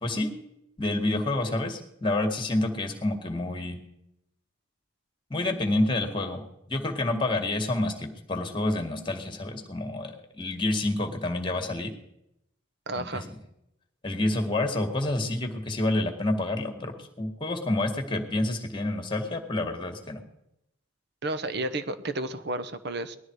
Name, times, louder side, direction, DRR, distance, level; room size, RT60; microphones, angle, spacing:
voice 1, 0.0-0.3 0.8-3.8 5.3-6.4 6.7-10.1 10.4-11.9 12.9-13.1 14.0-20.2, left 2 dB, 25° left, 5 dB, 2.1 m, -28 dB
voice 2, 12.9-13.3 21.2-23.2, right 2 dB, 55° right, 11 dB, 1.1 m, -32 dB
20.0 x 13.0 x 4.8 m, 0.82 s
head